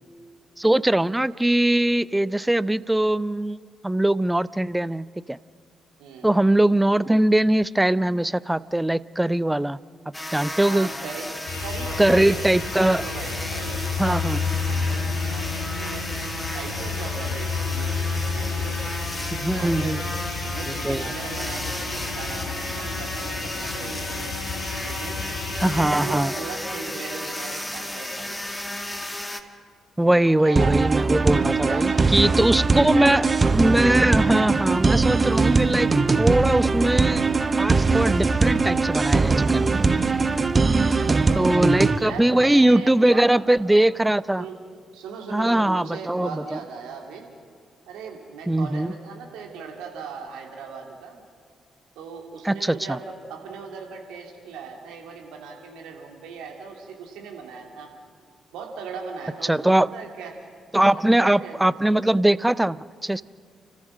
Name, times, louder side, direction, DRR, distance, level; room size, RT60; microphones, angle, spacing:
voice 1, 0.6-5.4 6.2-9.8 10.3-10.9 12.0-13.0 14.0-14.4 19.3-20.0 20.8-21.0 25.6-26.3 30.0-33.2 33.5-35.9 36.2-37.2 37.6-39.7 41.4-44.4 45.3-46.6 48.5-48.9 52.4-53.0 59.4-59.9 60.7-63.2, right 1 dB, 10° right, 19 dB, 0.5 m, -21 dB
sound 1, 10.1-29.4, left 1 dB, 10° left, 1.7 m, -33 dB
voice 2, 10.6-11.3 11.6-12.5 12.9-16.2 16.5-18.8 19.5-20.0 20.4-24.4 24.8-25.2 25.6-28.4 30.0-30.8 31.6-33.4 35.4-35.8 40.9-41.5 42.0-43.9 44.4-44.6 44.9-47.3 47.9-51.2 51.9-57.9 58.5-60.3 60.8-62.0, right 5 dB, 70° right, 1 dB, 2.8 m, -38 dB
sound 2, 11.5-25.8, left 5 dB, 80° left, 2.4 m, -31 dB
sound 3, 30.6-42.0, right 4 dB, 35° right, 0.8 m, -21 dB
29.5 x 14.0 x 6.3 m, 2.1 s
figure-of-eight pair, 40°, 0 cm